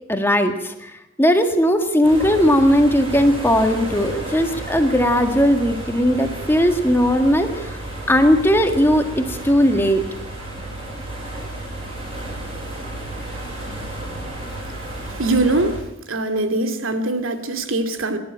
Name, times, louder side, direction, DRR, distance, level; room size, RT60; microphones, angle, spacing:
voice 1, 0.1-0.9 1.2-7.8 8.1-10.0, equal, 10° left, 5 dB, 1.8 m, -18 dB
sound 1, 2.0-15.8, right 1 dB, 25° right, 7.7 m, -32 dB
voice 2, 15.1-15.8 16.1-18.2, right 2 dB, 80° right, 7 dB, 2.5 m, -22 dB
26.5 x 11.5 x 8.9 m, 0.87 s
head